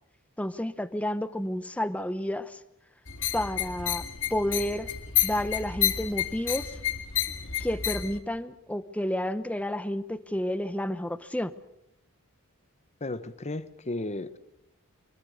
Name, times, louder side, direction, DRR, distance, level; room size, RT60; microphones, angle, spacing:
voice 1, 0.4-2.6 3.3-4.0 4.3-4.9 5.2-6.8 7.6-11.5, left 1 dB, 5° left, 12 dB, 0.9 m, -30 dB
sound 1, 3.1-8.2, left 11 dB, 60° left, 2.1 m, -30 dB
voice 2, 13.0-14.4, left 2 dB, 30° left, 13 dB, 1.1 m, -34 dB
24.5 x 23.0 x 6.5 m, 0.83 s
head